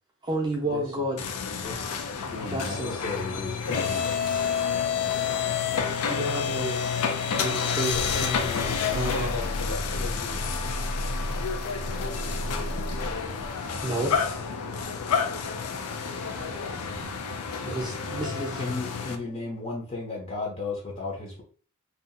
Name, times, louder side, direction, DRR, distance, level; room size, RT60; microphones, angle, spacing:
voice 1, 0.2-1.2 2.5-2.9 6.1-6.8 7.3-8.5 8.9-9.4 13.8-14.2 17.6-18.6, right 1 dB, 20° right, -2 dB, 0.6 m, -31 dB
sound 1, 1.2-19.2, left 5 dB, 85° left, 0.4 m, -29 dB
voice 2, 1.5-4.1 18.6-21.4, left 3 dB, 30° left, -2 dB, 0.6 m, -34 dB
voice 3, 7.8-10.3, left 2 dB, 65° left, 0 dB, 0.8 m, -37 dB
sound 2, 9.5-19.5, right 2 dB, 80° right, 0.5 m, -46 dB
2.7 x 2.4 x 2.5 m, 0.41 s
head